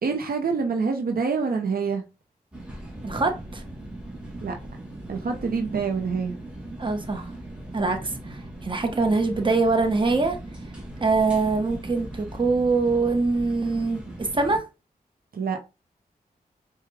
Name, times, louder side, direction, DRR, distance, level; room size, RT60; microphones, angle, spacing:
voice 1, 0.0-2.0 4.4-4.6 5.1-6.3 15.3-15.7, right 5 dB, 70° right, 0.7 m, -26 dB
sound 1, 2.5-14.6, right 1 dB, 5° right, 1.5 m, -39 dB
voice 2, 3.0-3.6 6.8-7.3 7.7-10.4 11.0-14.6, right 3 dB, 30° right, 0.9 m, -24 dB
4.8 x 2.2 x 3.4 m
wide cardioid pair, 70°, 16 cm